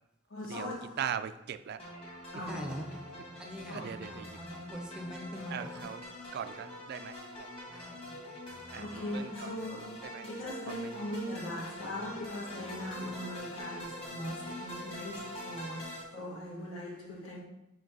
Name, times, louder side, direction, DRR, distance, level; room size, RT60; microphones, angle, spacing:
voice 1, 0.3-1.3 2.3-2.9 3.7-4.0 8.8-17.4, left 1 dB, 80° left, 1.8 m, -40 dB
voice 2, 1.0-1.8 3.7-4.3 5.5-6.0 6.3-7.1 8.7-8.8 9.1-9.5 10.0-10.2, right 8 dB, 55° right, 0.3 m, -39 dB
sound 1, 1.8-16.0, equal, 30° left, 1.8 m, -44 dB
voice 3, 2.3-6.4 7.7-8.3, equal, 5° right, 0.6 m, -44 dB
5.1 x 4.7 x 3.9 m
head